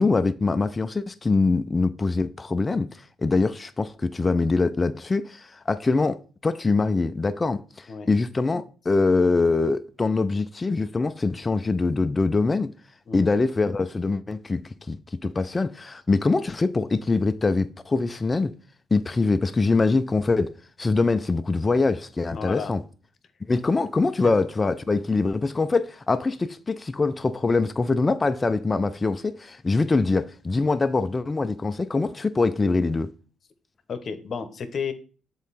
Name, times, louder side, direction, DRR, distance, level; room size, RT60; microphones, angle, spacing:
voice 1, 0.0-2.9 3.2-12.7 13.1-14.6 14.9-18.5 18.9-20.5 20.8-22.8 23.5-33.1, left 3 dB, 25° left, 0.4 m, -23 dB
voice 2, 22.3-22.7 33.9-34.9, left 6 dB, 50° left, 0.9 m, -32 dB
7.3 x 3.9 x 4.1 m
cardioid pair, 90°, 0 cm